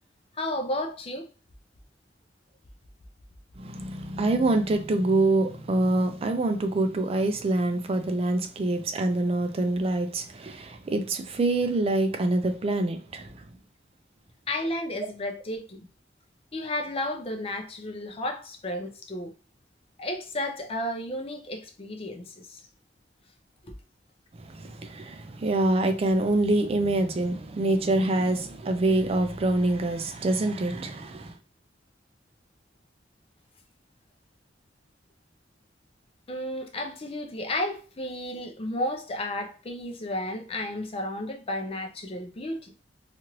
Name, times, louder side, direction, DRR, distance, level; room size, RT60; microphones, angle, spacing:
voice 1, 0.3-1.3 14.5-15.9 16.5-19.3 20.0-22.6 23.6-23.7 36.3-42.7, left 1 dB, 35° left, 0.5 m, -32 dB
voice 2, 3.6-13.4 24.4-31.4, right 2 dB, 35° right, 0.4 m, -25 dB
3.0 x 2.5 x 2.9 m
head